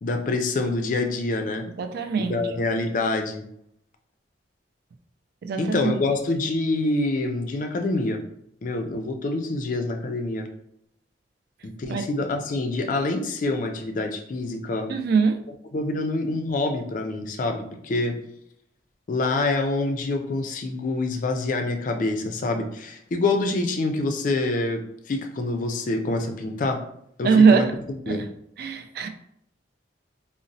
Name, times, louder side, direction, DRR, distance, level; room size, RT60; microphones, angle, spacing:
voice 1, 0.0-1.6 2.2-3.4 5.6-8.2 8.6-10.5 11.6-14.9 15.7-18.2 19.1-26.8 27.2-27.7 28.1-28.2, left 2 dB, 45° left, 5 dB, 0.4 m, -26 dB
voice 2, 1.8-2.4 5.4-6.0 11.9-12.0 14.9-15.4 27.2-27.7 28.1-28.3 28.6-29.1, right 5 dB, 55° right, 7 dB, 0.3 m, -21 dB
3.9 x 2.0 x 2.6 m, 0.74 s
head